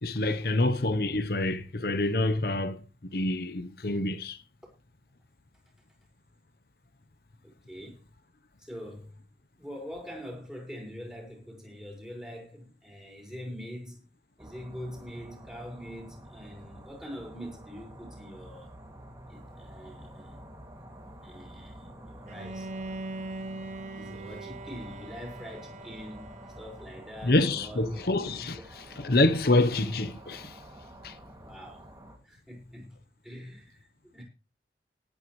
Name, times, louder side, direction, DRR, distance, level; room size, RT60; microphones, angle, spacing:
voice 1, 0.0-4.4 27.2-30.6 31.0-31.1, left 2 dB, 55° left, 0.9 m, -27 dB
voice 2, 7.4-8.0 8.6-9.2 9.6-14.0 14.4-18.7 19.3-20.4 21.2-22.7 23.9-28.1 28.4-28.5 31.4-31.9 32.2-33.0 33.2-34.2, equal, 5° right, 5.4 m, -44 dB
sound 1, 14.4-32.2, right 1 dB, 20° right, 2.4 m, -48 dB
Bowed string instrument, 22.3-27.3, right 2 dB, 40° right, 0.9 m, -41 dB
19.0 x 9.0 x 3.2 m
head